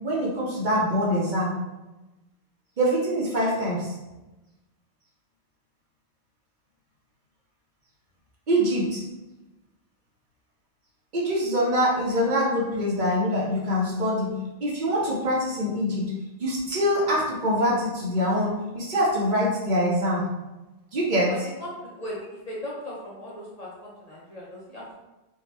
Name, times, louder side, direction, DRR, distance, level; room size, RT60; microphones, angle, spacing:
voice 1, 0.0-1.6 2.8-3.9 8.5-9.0 11.1-14.3 14.6-16.1 16.4-20.3 20.9-21.3, equal, 50° right, -4 dB, 0.7 m, -24 dB
voice 2, 21.3-22.2 22.5-24.9, left 1 dB, 45° left, -6 dB, 0.5 m, -38 dB
2.7 x 2.2 x 3.2 m, 1.0 s
omnidirectional pair, 1.1 m